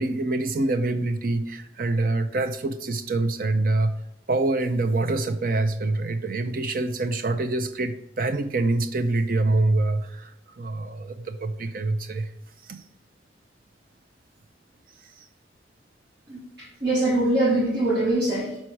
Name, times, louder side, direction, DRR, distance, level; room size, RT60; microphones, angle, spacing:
voice 1, 0.0-4.0 4.3-10.3 10.6-12.3 12.7-12.8, right 2 dB, 50° right, 9 dB, 0.6 m, -25 dB
voice 2, 16.3-18.6, right 1 dB, 70° right, -9 dB, 2.4 m, -23 dB
6.2 x 4.3 x 4.5 m, 0.81 s
head